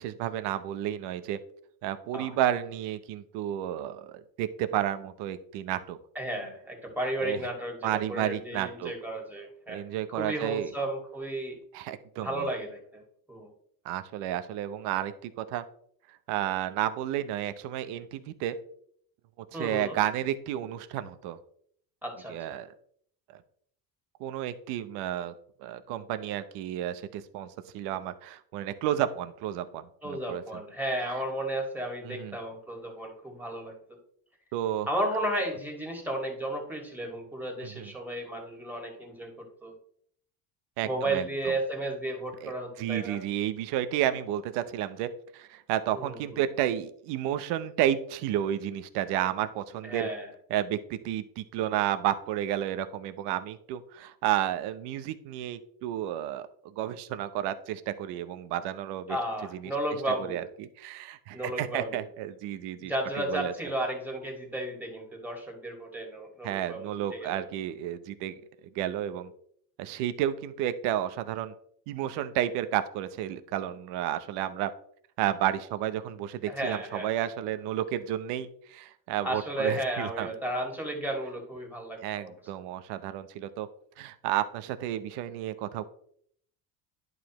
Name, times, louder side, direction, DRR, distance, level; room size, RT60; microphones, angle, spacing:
voice 1, 0.0-1.4 1.8-6.0 7.2-7.4 7.8-8.9 9.7-10.7 11.7-12.5 13.8-15.6 16.3-18.6 19.6-21.4 22.3-22.7 24.2-25.3 25.6-30.6 32.0-32.4 34.5-34.9 37.6-37.9 40.8-41.2 42.4-42.5 42.8-50.1 50.5-59.2 59.5-59.7 60.2-62.9 63.3-63.5 66.4-68.4 68.7-69.3 69.8-71.5 71.9-74.7 75.2-80.3 82.0-83.7 84.0-85.8, right 11 dB, 80° right, 11 dB, 0.8 m, -31 dB
voice 2, 6.2-9.8 10.1-11.6 12.2-13.0 13.3-13.5 19.5-20.0 22.0-22.6 30.0-34.0 34.9-39.7 40.8-43.2 45.9-46.5 49.8-50.3 59.1-60.4 61.3-62.0 62.8-67.5 76.5-77.1 79.2-82.3, right 1 dB, 5° right, 0 dB, 2.2 m, -33 dB
11.0 x 4.9 x 3.1 m, 0.65 s
cardioid pair, 115°, 41 cm